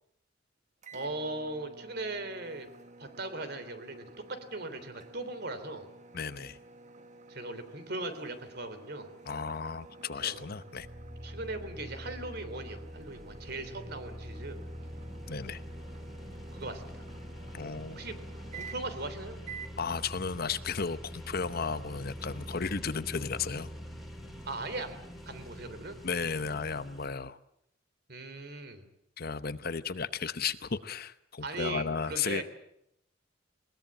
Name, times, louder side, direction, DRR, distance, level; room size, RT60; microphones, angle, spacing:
sound 1, 0.8-19.1 19.4-19.8, right 4 dB, 35° right, 1.5 m, -51 dB
voice 1, 0.9-2.7 3.0-5.9 7.3-9.1 10.2-10.4 11.2-14.6 16.5-17.0 17.9-18.1 18.5-19.4 24.4-25.0 25.2-26.0 28.1-28.8 31.4-32.4, right 2 dB, 55° right, 10 dB, 3.3 m, -39 dB
voice 2, 6.1-6.6 9.3-10.9 15.3-15.6 17.5-18.0 19.8-23.7 26.0-27.4 29.2-32.4, left 5 dB, 50° left, 13 dB, 0.9 m, -34 dB
sound 2, 10.7-27.1, equal, ahead, 3.5 m, -44 dB
21.0 x 20.5 x 8.8 m, 0.76 s
head